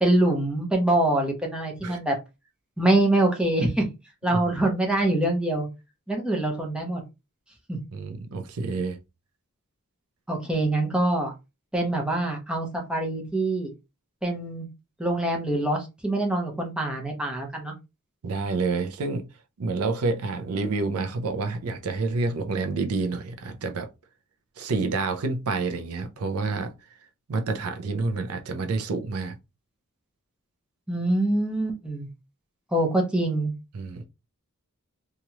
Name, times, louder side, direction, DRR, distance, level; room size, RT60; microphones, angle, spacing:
voice 1, 0.0-2.2 2.8-3.8 4.2-5.7 6.1-7.0 7.7-7.8 10.3-11.3 11.7-13.7 14.2-14.7 15.0-17.7 30.9-32.1 32.7-33.5, right 1 dB, 5° right, 0.8 m, -24 dB
voice 2, 7.9-9.0 18.2-19.2 19.6-23.9 24.6-26.7 27.3-29.4 33.7-34.0, right 3 dB, 80° right, 0.5 m, -28 dB
2.9 x 2.4 x 2.8 m
head